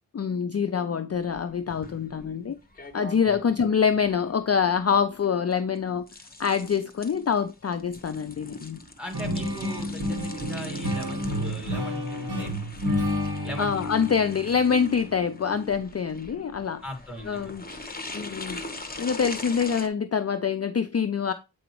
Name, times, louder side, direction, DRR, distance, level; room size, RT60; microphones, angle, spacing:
voice 1, 0.1-2.6 2.9-6.0 6.4-8.8 13.6-16.8 17.2-17.6 18.1-18.6 19.0-21.3, left 6 dB, 40° left, 0.4 m, -25 dB
sound 1, 1.1-19.9, left 2 dB, 25° left, 0.9 m, -42 dB
voice 2, 9.0-12.5 13.4-13.7 16.8-17.5, equal, ahead, 1.8 m, -38 dB
sound 2, 9.1-15.7, left 1 dB, 80° right, 2.0 m, -31 dB
7.7 x 5.1 x 2.9 m
wide cardioid pair, 60°, 39 cm